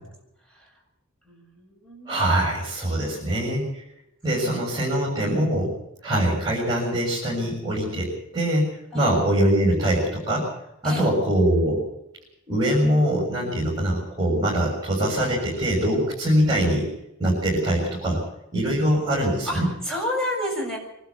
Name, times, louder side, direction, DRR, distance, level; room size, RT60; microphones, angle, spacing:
voice 1, 1.3-2.4 4.4-4.7 5.2-5.3 8.9-9.1 10.8-11.1 19.4-20.8, left 1 dB, 5° left, -1 dB, 7.4 m, -31 dB
voice 2, 2.1-3.8 4.2-5.7 6.0-10.5 10.8-11.9 12.5-16.9 17.2-18.2 18.5-19.7, right 1 dB, 20° right, -5 dB, 6.9 m, -23 dB
25.0 x 12.5 x 8.5 m, 0.86 s
head